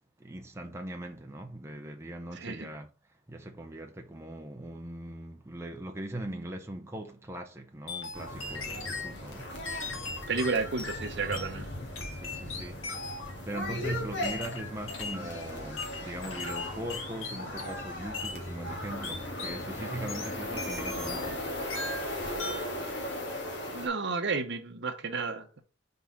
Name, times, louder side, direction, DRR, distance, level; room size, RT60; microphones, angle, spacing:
voice 1, 0.2-2.9 3.3-9.5 12.1-12.8 13.4-21.5, right 1 dB, 15° right, 0.6 m, -40 dB
voice 2, 2.3-2.7 9.6-9.7 10.3-11.7 23.7-25.6, right 4 dB, 60° right, 0.9 m, -32 dB
sound 1, 7.9-9.1 9.6-11.5 11.9-13.3 14.2-15.3 15.8-17.9 18.1-18.4 19.0-19.6 20.1-21.4 21.7-22.1 22.4-22.7, left 3 dB, 80° left, 1.7 m, -39 dB
sound 2, 8.1-23.9, left 1 dB, 60° left, 1.8 m, -38 dB
4.8 x 3.9 x 5.6 m
head